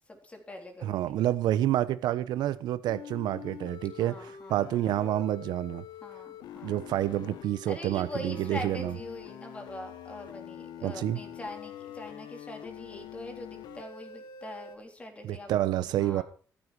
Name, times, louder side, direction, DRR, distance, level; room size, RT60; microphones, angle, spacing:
voice 1, 0.1-1.2 4.0-4.6 6.0-6.8 7.7-15.5 16.0-16.2, left 1 dB, 20° left, 3.7 m, -43 dB
voice 2, 0.8-5.8 6.6-8.9 10.8-11.2 15.2-16.2, right 13 dB, 90° right, 1.0 m, -28 dB
sound 1, 2.9-14.8, left 9 dB, 90° left, 1.7 m, -45 dB
14.0 x 14.0 x 4.8 m
cardioid pair, 145°, 7 cm